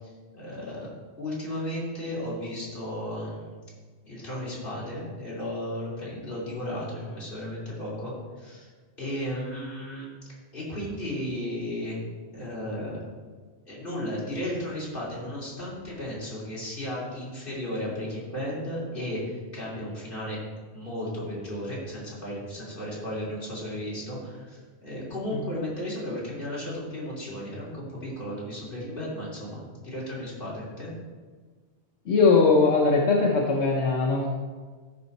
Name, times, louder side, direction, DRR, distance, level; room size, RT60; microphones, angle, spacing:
voice 1, 0.3-0.9 1.2-3.5 4.0-8.7 9.0-10.1 10.5-11.9 12.3-13.0 13.6-20.4 20.7-30.9, left 1 dB, 50° left, -7 dB, 3.4 m, -34 dB
voice 2, 32.1-34.3, left 4 dB, 85° left, -2 dB, 1.2 m, -20 dB
13.5 x 5.5 x 4.1 m, 1.5 s
omnidirectional pair, 1.1 m